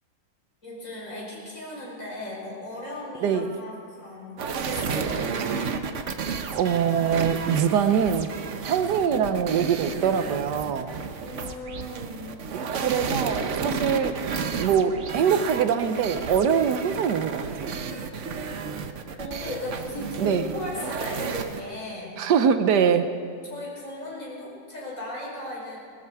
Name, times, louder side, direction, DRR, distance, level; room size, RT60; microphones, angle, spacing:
voice 1, 0.6-5.3 11.2-12.4 12.8-12.9 19.2-22.2 23.5-25.8, left 1 dB, 50° left, -5 dB, 5.7 m, -37 dB
voice 2, 3.2-3.5 6.6-8.3 8.7-10.9 12.5-14.2 14.5-17.8 20.2-20.5 22.2-23.1, right 7 dB, 85° right, 9 dB, 1.4 m, -23 dB
sound 1, 4.4-21.6, right 5 dB, 55° right, 1.1 m, -32 dB
20.0 x 13.5 x 4.7 m, 2.3 s
omnidirectional pair, 1.8 m